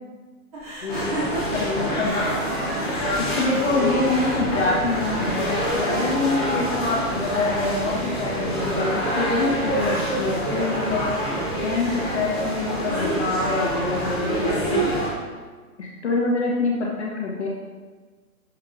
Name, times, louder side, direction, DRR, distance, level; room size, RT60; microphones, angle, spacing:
sound 1, 0.5-7.3, right 1 dB, 25° right, 2.5 m, -37 dB
sound 2, 0.9-15.1, equal, 5° left, 0.8 m, -26 dB
voice 1, 1.5-2.3 3.2-11.1 11.6-14.7 15.8-17.5, left 3 dB, 45° left, -3 dB, 1.4 m, -25 dB
11.0 x 7.3 x 2.6 m, 1.4 s
hypercardioid pair, 175°, 45 cm